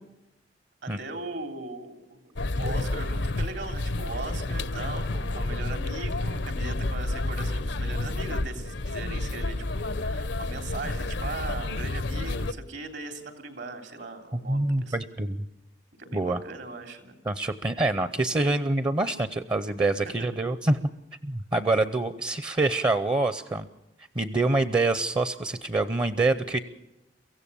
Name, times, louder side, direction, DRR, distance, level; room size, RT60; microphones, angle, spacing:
voice 1, 0.8-15.0 16.0-17.2, right 3 dB, 75° right, 5 dB, 3.3 m, -39 dB
sound 1, 2.4-12.5, left 2 dB, 85° left, 0.9 m, -30 dB
voice 2, 14.5-15.4 16.1-16.4 17.3-20.8 21.2-23.7 24.2-26.6, right 2 dB, 25° right, 12 dB, 0.6 m, -26 dB
24.0 x 15.5 x 6.9 m, 0.94 s
head